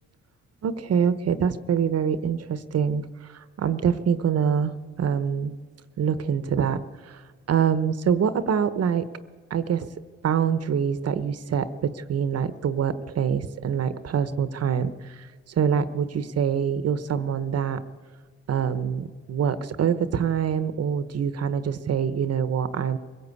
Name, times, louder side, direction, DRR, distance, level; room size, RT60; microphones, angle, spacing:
voice 1, 0.6-5.5 6.0-7.2 7.5-9.1 9.5-9.9 10.2-15.3 15.5-17.8 18.5-23.0, right 7 dB, 55° right, 13 dB, 1.1 m, -25 dB
23.5 x 16.0 x 8.4 m, 1.5 s
cardioid pair, 90°, 30 cm